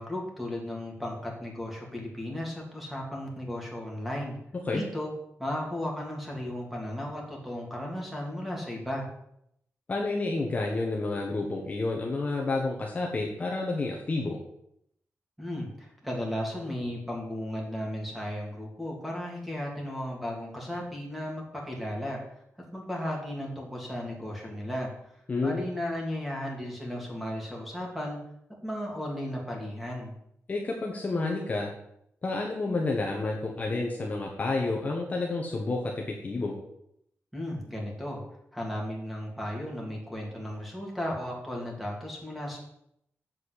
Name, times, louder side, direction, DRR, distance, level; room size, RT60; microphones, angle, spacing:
voice 1, 0.0-4.4 4.7-5.1 5.4-9.1 15.4-22.2 22.7-24.9 25.4-28.2 28.6-30.1 37.3-38.2 38.5-42.6, left 1 dB, ahead, -2 dB, 3.1 m, -35 dB
voice 2, 9.9-14.4 25.3-25.6 30.5-31.7 32.2-36.6, left 3 dB, 30° left, 0 dB, 1.4 m, -30 dB
7.6 x 7.5 x 8.3 m, 0.76 s
wide cardioid pair, 165°, 5 cm